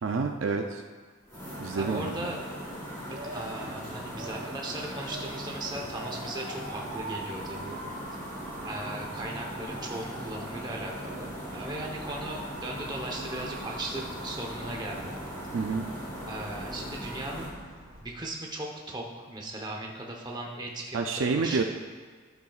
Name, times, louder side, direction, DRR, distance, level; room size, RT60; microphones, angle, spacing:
voice 1, 0.0-0.8 1.6-2.3 15.5-15.9 20.9-21.6, right 4 dB, 65° right, 4 dB, 0.4 m, -28 dB
Motor vehicle (road) / Siren, 1.2-18.0, right 1 dB, 40° right, 1.8 m, -45 dB
sound 1, 1.3-17.5, equal, 15° left, 2.3 m, -39 dB
voice 2, 1.7-2.4 3.0-7.8 8.6-15.2 16.3-17.6 18.0-21.6, right 1 dB, 20° right, 0 dB, 0.9 m, -38 dB
12.0 x 8.0 x 2.4 m, 1.5 s
head